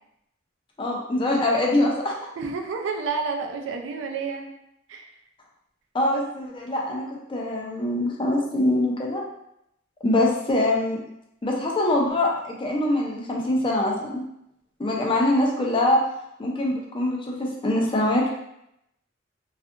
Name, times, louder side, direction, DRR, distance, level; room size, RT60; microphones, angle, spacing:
voice 1, 0.8-2.1 5.9-9.2 10.0-11.0 11.4-14.2 14.8-16.0 16.4-18.3, left 1 dB, 25° left, -1 dB, 0.4 m, -23 dB
voice 2, 2.4-4.5 4.9-5.1, right 4 dB, 75° right, 3 dB, 0.4 m, -30 dB
2.6 x 2.4 x 2.4 m, 0.79 s
head